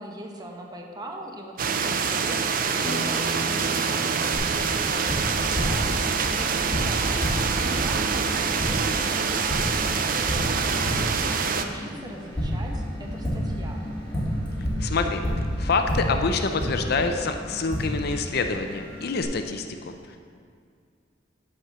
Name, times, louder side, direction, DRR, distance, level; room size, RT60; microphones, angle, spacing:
voice 1, 0.0-13.9, right 1 dB, 20° right, 1 dB, 0.9 m, -41 dB
sound 1, 1.6-11.6, right 5 dB, 50° right, 0.5 m, -25 dB
Bass guitar, 2.8-7.1, right 2 dB, 40° left, 1.1 m, -38 dB
Tap, 4.3-19.2, equal, 10° left, 2.6 m, -30 dB
voice 2, 14.6-20.2, left 4 dB, 55° left, 6 dB, 0.6 m, -27 dB
10.5 x 4.4 x 6.7 m, 2.2 s
head